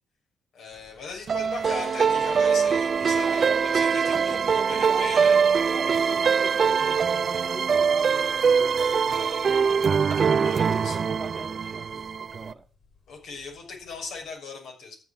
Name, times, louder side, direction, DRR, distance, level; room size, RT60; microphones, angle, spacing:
voice 1, 0.5-5.4 9.1-9.4 10.2-11.0 13.1-14.9, left 4 dB, 75° left, 6.4 m, -38 dB
sound 1, 0.7-14.3, left 4 dB, 40° left, 6.4 m, -50 dB
sound 2, 1.3-12.5, right 6 dB, 45° right, 0.5 m, -23 dB
voice 2, 3.2-5.4 5.7-9.4 10.2-12.7, right 4 dB, 30° right, 1.4 m, -40 dB
13.5 x 7.4 x 7.5 m
cardioid pair, 90°, 0 cm